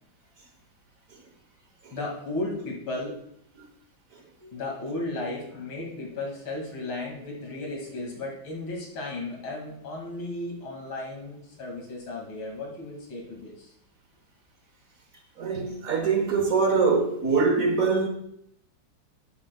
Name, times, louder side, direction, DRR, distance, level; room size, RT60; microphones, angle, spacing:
voice 1, 1.9-3.2 4.4-13.7, left 2 dB, 90° left, 3.0 m, -35 dB
voice 2, 15.4-18.1, right 4 dB, 55° right, 1.2 m, -23 dB
10.5 x 9.5 x 2.3 m
omnidirectional pair, 2.1 m